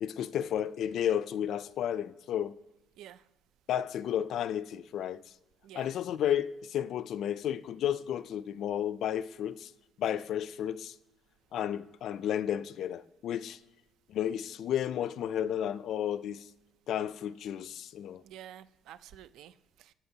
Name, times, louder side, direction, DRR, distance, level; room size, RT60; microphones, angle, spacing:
voice 1, 0.0-2.6 3.7-5.2 5.7-9.7 10.0-10.9 11.5-13.6 14.1-16.5 16.9-18.2, left 10 dB, 65° left, 0.3 m, -32 dB
voice 2, 18.2-19.9, right 11 dB, 80° right, 0.4 m, -50 dB
15.5 x 5.9 x 2.8 m
cardioid pair, 125°, 0 cm